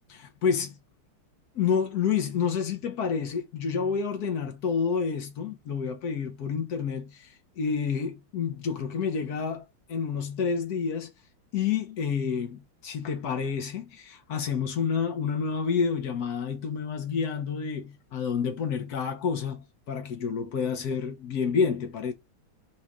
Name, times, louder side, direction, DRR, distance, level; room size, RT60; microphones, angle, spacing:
voice 1, 0.2-0.7 1.5-7.3 7.6-11.1 11.5-22.1, left 6 dB, 55° left, 1.2 m, -29 dB
4.2 x 2.4 x 4.7 m
omnidirectional pair, 2.3 m